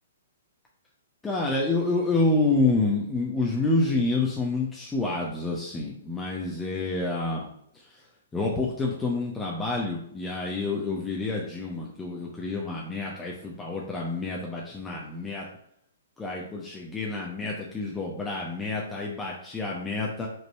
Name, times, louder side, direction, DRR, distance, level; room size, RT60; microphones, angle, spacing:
voice 1, 1.2-7.5 7.7-8.1 8.3-15.5 16.2-20.3, left 3 dB, 10° left, -2 dB, 1.0 m, -28 dB
5.3 x 4.6 x 5.3 m, 0.72 s
figure-of-eight pair, 115°, 0 cm